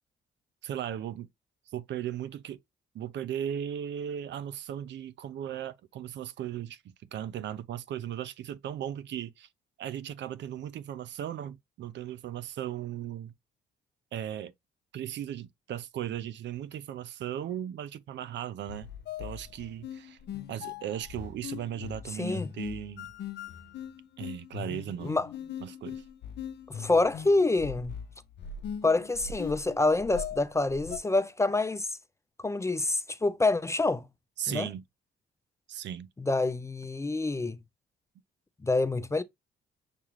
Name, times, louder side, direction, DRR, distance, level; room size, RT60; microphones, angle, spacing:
voice 1, 0.6-1.3 1.7-2.6 2.9-9.5 9.8-13.3 14.1-14.5 14.9-18.9 19.2-20.2 20.5-23.1 24.2-25.2 25.6-26.0 34.4-34.8 35.7-36.1, right 10 dB, 65° right, 0.5 m, -37 dB
sound 1, 18.7-31.0, left 8 dB, 60° left, 0.6 m, -40 dB
voice 2, 22.2-22.5 25.0-25.3 26.7-28.0 28.8-32.0 32.4-34.0 34.5-34.7 36.2-37.6 38.6-39.2, left 2 dB, 15° left, 0.4 m, -27 dB
6.8 x 2.4 x 3.1 m
cardioid pair, 90°, 20 cm